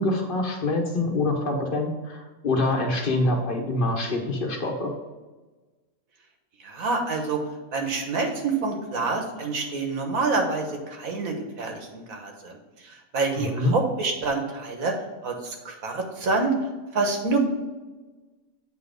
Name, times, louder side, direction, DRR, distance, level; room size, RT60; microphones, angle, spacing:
voice 1, 0.0-4.9 13.3-13.7, left 2 dB, 40° left, 2 dB, 1.2 m, -25 dB
voice 2, 6.6-7.4 7.7-12.6 12.8-14.9 15.2-16.5 16.9-17.4, right 3 dB, 75° right, 2 dB, 1.7 m, -27 dB
8.4 x 3.8 x 5.2 m, 1.2 s
omnidirectional pair, 1.5 m